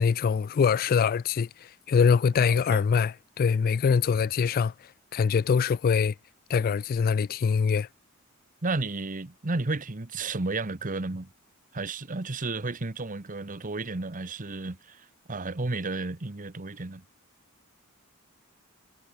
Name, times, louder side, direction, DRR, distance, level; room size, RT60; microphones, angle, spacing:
voice 1, 0.0-1.5 1.9-4.7 5.1-6.1 6.5-7.9, left 6 dB, 45° left, 0.3 m, -23 dB
voice 2, 2.4-2.8 8.6-11.3 11.7-17.0, right 3 dB, 40° right, 1.1 m, -32 dB
head